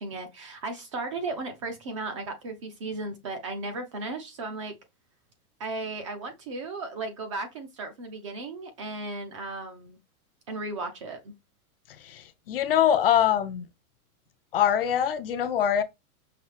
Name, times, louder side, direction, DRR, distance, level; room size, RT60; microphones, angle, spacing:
voice 1, 0.0-4.7 5.6-10.0 10.5-11.3, right 3 dB, 25° right, 0.4 m, -35 dB
voice 2, 12.0-13.7 14.5-15.8, left 9 dB, 45° left, 0.4 m, -24 dB
5.7 x 2.6 x 3.2 m
supercardioid pair, 165°, 44 cm